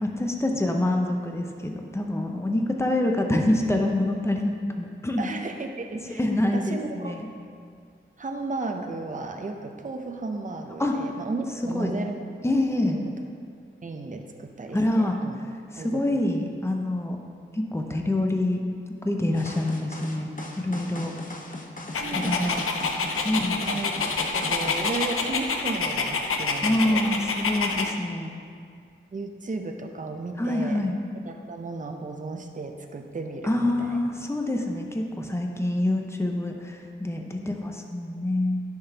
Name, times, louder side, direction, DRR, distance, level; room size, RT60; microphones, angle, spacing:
voice 1, 0.0-5.3 6.2-7.3 10.8-10.9 11.6-11.9 12.4-13.0 14.7-15.2 15.7-17.2 17.5-18.6 19.0-20.3 20.6-21.1 22.2-22.5 23.2-23.6 26.6-28.3 30.4-31.0 33.4-38.6, left 1 dB, 10° left, 2 dB, 0.8 m, -26 dB
voice 2, 5.2-6.2 6.5-7.1 8.2-12.3 12.8-13.1 13.8-15.4 15.8-16.3 22.0-22.7 23.6-23.9 24.3-27.1 29.1-30.9 31.3-34.0 37.4-37.5, right 3 dB, 40° right, 4 dB, 0.6 m, -34 dB
sound 1, 19.3-24.9, left 2 dB, 40° left, 0.9 m, -38 dB
Dog, 21.9-27.9, left 4 dB, 90° left, 0.5 m, -27 dB
10.0 x 6.0 x 2.9 m, 2.2 s
cardioid pair, 55°, 21 cm